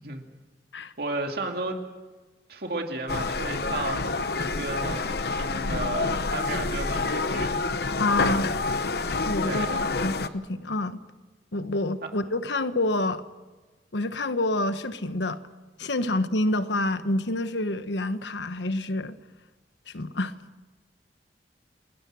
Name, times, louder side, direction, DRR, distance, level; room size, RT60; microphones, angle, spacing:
voice 1, 1.0-1.8 2.5-7.6 9.4-9.9 12.0-12.1, right 2 dB, 60° right, 2.4 m, -33 dB
sound 1, 3.1-10.3, left 3 dB, 60° left, 0.9 m, -28 dB
voice 2, 8.0-8.5 9.2-11.0 11.5-13.2 13.9-15.4 15.8-19.2 19.9-20.3, left 2 dB, 85° left, 1.2 m, -27 dB
29.0 x 21.0 x 6.3 m
head